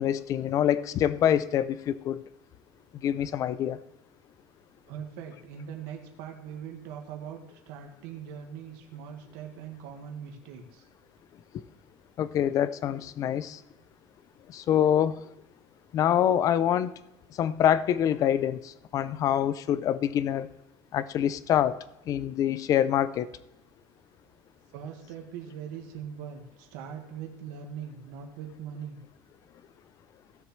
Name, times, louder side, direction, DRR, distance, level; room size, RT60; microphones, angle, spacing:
voice 1, 0.0-2.2 2.9-3.8 11.5-11.6 12.2-13.6 14.5-15.2 15.9-16.9 17.4-20.5 20.9-21.8 22.1-23.3, left 10 dB, 30° left, 0.4 m, -25 dB
voice 2, 4.9-10.9 24.7-29.0, right 8 dB, 80° right, 1.7 m, -41 dB
16.5 x 7.1 x 3.1 m
cardioid pair, 165°, 11 cm